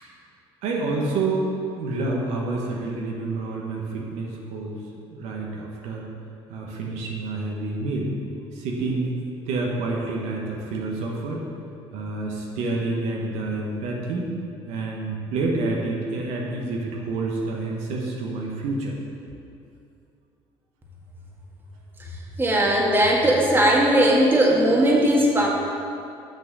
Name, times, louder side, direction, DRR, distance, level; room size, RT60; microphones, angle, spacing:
voice 1, 0.6-1.5 1.7-4.8 5.1-6.1 6.5-8.1 8.5-9.1 9.5-11.4 11.9-14.3 14.7-18.9, right 3 dB, 75° right, -2 dB, 1.3 m, -28 dB
voice 2, 22.4-25.5, right 1 dB, 20° right, -3 dB, 1.8 m, -18 dB
6.5 x 6.2 x 6.1 m, 2.6 s
supercardioid pair, 75°, 12 cm